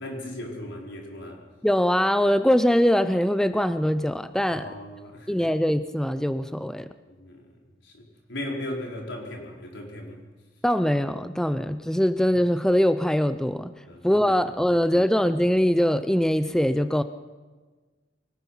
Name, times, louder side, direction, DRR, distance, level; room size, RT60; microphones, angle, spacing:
voice 1, 0.0-1.4 4.5-5.5 7.0-7.6 7.8-8.0 8.3-10.2 13.9-14.3 14.6-15.0, left 1 dB, 80° left, 0 dB, 4.7 m, -37 dB
voice 2, 1.6-4.7 5.3-6.9 10.6-13.7 14.0-17.0, equal, 5° left, 11 dB, 0.5 m, -22 dB
25.0 x 19.0 x 5.7 m, 1.3 s
head